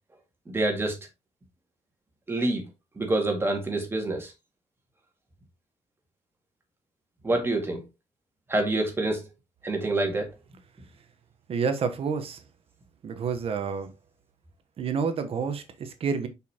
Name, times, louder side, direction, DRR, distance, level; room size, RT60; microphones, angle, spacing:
voice 1, 0.5-1.1 2.3-2.7 3.0-4.3 7.2-7.8 8.5-9.3 9.6-10.3, right 2 dB, 20° right, 2.1 m, -27 dB
voice 2, 11.5-12.4 13.0-13.9 14.8-16.3, right 6 dB, 50° right, 1.1 m, -29 dB
6.4 x 5.5 x 2.9 m
cardioid pair, 145°, 12 cm